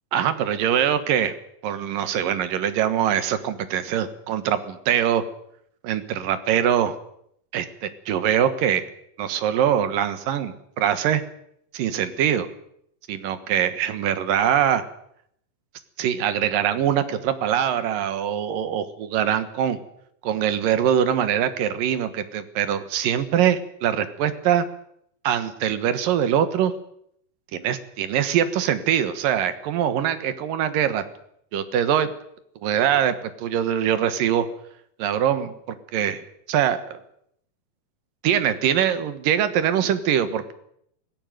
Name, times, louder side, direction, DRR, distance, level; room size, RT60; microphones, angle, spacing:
voice 1, 0.1-1.3 1.6-5.2 5.8-7.0 7.5-8.8 9.2-11.2 11.7-12.5 13.1-14.8 16.0-19.8 20.2-24.7 25.2-26.7 27.5-31.0 31.5-32.1 32.6-34.5 35.0-37.0 38.2-40.5, right 9 dB, 70° right, 11 dB, 3.0 m, -23 dB
18.5 x 16.5 x 9.2 m, 0.71 s
omnidirectional pair, 4.3 m